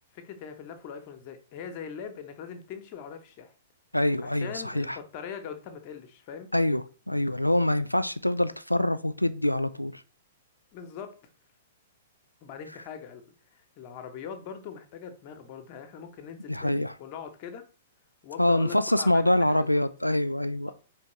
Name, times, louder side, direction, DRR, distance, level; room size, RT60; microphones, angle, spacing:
voice 1, 0.1-3.5 4.2-6.5 10.7-11.1 12.4-17.6 18.2-19.6, left 7 dB, 35° left, 0.8 m, -41 dB
voice 2, 3.9-5.0 6.5-10.0 16.5-16.9 18.4-20.7, left 1 dB, 90° left, 0.3 m, -25 dB
4.4 x 3.3 x 3.1 m
figure-of-eight pair, 110°, 0 cm